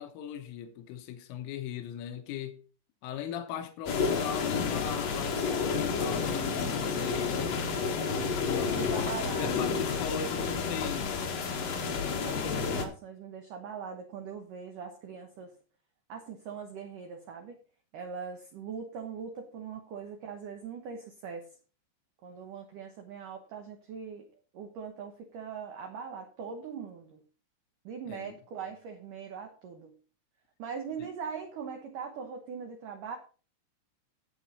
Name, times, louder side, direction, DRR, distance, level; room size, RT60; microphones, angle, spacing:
voice 1, 0.0-2.6 3.0-7.4 8.4-11.1 28.1-28.4, left 8 dB, 90° left, 3.7 m, -39 dB
sound 1, 3.9-12.9, left 5 dB, 75° left, 1.5 m, -30 dB
voice 2, 8.5-9.8 12.2-15.5 16.1-17.6 17.9-21.5 22.2-24.3 24.5-27.2 27.9-29.9 30.6-33.2, right 6 dB, 85° right, 1.8 m, -41 dB
12.0 x 8.2 x 4.2 m
omnidirectional pair, 5.6 m